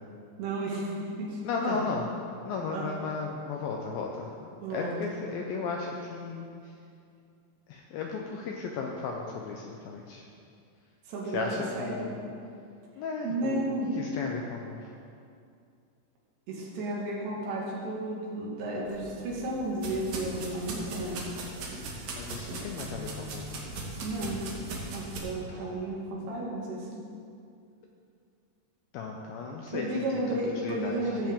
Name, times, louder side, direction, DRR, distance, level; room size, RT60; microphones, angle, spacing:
voice 1, 0.4-1.4 1.6-1.8 2.7-2.9 4.6-4.9 11.1-12.1 13.2-13.9 16.5-21.2 24.0-24.4 24.9-27.0 29.7-31.3, right 1 dB, 90° right, -5 dB, 3.8 m, -33 dB
voice 2, 1.4-4.3 4.7-6.7 7.7-10.3 11.3-12.2 13.0-14.9 22.2-23.5 25.5-25.7 28.9-31.2, left 4 dB, 80° left, 1 dB, 2.1 m, -35 dB
sound 1, 18.9-25.2, right 2 dB, 65° right, 2.8 m, -39 dB
15.0 x 7.7 x 3.6 m, 2.4 s
omnidirectional pair, 4.9 m